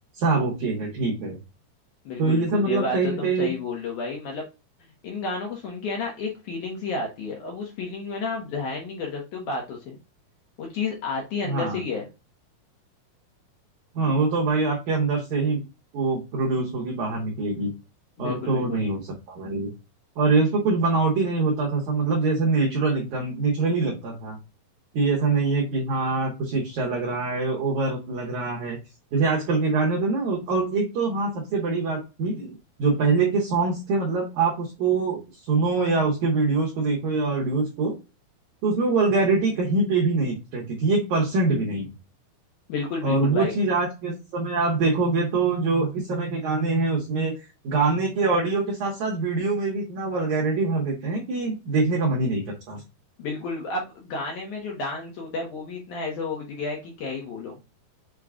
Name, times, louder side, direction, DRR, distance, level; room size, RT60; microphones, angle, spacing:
voice 1, 0.2-1.4 2.2-3.5 11.5-11.8 13.9-15.6 15.9-17.7 18.2-19.7 20.2-24.4 24.9-28.8 29.1-38.0 38.6-41.9 43.0-47.4 47.6-52.8, right 3 dB, 70° right, -2 dB, 1.9 m, -24 dB
voice 2, 2.1-4.4 5.0-10.0 10.6-12.1 18.2-18.9 42.7-43.5 53.2-57.6, left 3 dB, 70° left, -1 dB, 1.9 m, -31 dB
6.4 x 2.2 x 3.6 m, 0.28 s
omnidirectional pair, 4.6 m